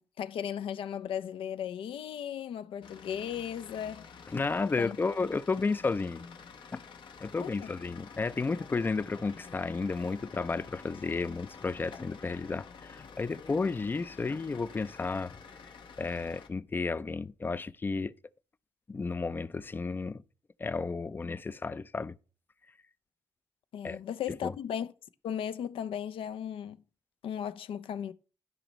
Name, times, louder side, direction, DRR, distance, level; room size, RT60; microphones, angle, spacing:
voice 1, 0.0-4.1 4.8-5.0 7.4-7.7 23.7-24.9 25.2-26.8 27.2-28.1, left 9 dB, 90° left, 0.4 m, -36 dB
sound 1, 2.8-16.5, left 5 dB, 70° left, 0.8 m, -50 dB
voice 2, 4.3-6.2 6.7-6.8 7.2-15.4 16.0-18.1 18.9-20.2 20.6-22.2 23.8-24.0 24.4-24.5, left 4 dB, 25° left, 0.3 m, -32 dB
12.5 x 5.1 x 3.1 m
cardioid pair, 115°, 9 cm